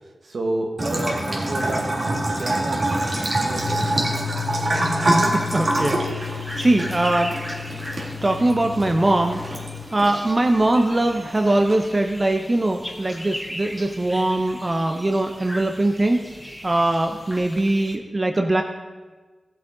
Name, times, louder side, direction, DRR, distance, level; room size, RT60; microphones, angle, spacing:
voice 1, 0.2-2.9 3.3-4.0, right 1 dB, 75° right, 1 dB, 1.7 m, -30 dB
Bathtub (filling or washing) / Trickle dribble, 0.8-11.7, right 1 dB, 55° right, 2.1 m, -26 dB
sound 1, 3.6-9.8, left 10 dB, 60° left, 1.2 m, -33 dB
voice 2, 4.7-7.3 8.2-9.4 9.9-16.2 16.6-18.6, right 1 dB, 35° right, 4 dB, 0.8 m, -21 dB
sound 2, 6.2-17.9, equal, ahead, 1.6 m, -38 dB
15.0 x 7.7 x 3.9 m, 1.3 s
cardioid pair, 50°, 0 cm